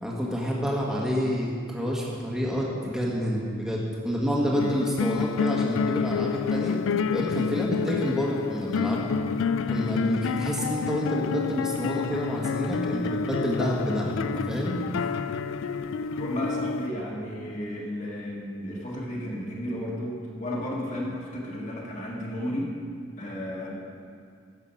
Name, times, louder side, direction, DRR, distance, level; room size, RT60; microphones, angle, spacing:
voice 1, 0.0-6.8 7.1-9.1 9.7-15.0, equal, 5° right, -4 dB, 1.5 m, -28 dB
sound 1, 4.5-16.9, left 5 dB, 75° left, 0.4 m, -29 dB
voice 2, 16.2-22.7 23.2-23.7, left 1 dB, 35° left, -3 dB, 2.0 m, -33 dB
13.0 x 8.2 x 5.4 m, 2.2 s
head